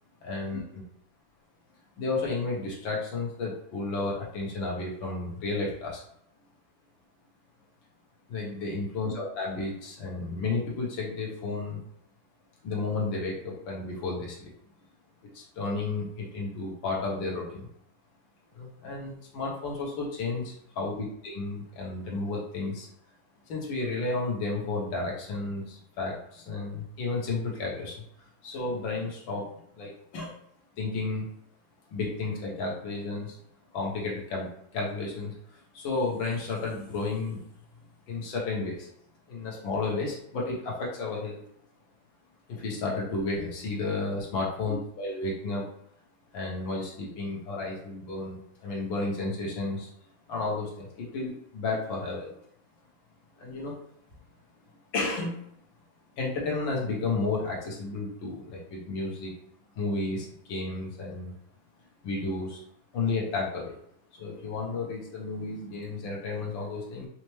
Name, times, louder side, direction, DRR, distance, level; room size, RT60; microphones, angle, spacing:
voice 1, 0.2-0.8 2.0-6.0 8.3-11.8 12.6-14.5 15.3-17.7 18.5-20.4 20.8-22.9 23.5-28.0 28.4-29.5 29.8-30.3 30.8-31.3 31.9-33.4 33.7-37.4 38.1-38.9 39.3-41.4 42.5-45.7 46.3-49.9 50.3-52.4 53.4-53.8 54.9-55.5 56.2-59.3 59.8-61.3 62.0-62.6 62.9-63.7 64.1-67.1, left 3 dB, 70° left, -3 dB, 1.8 m, -32 dB
5.6 x 2.1 x 3.2 m, 0.69 s
omnidirectional pair, 2.2 m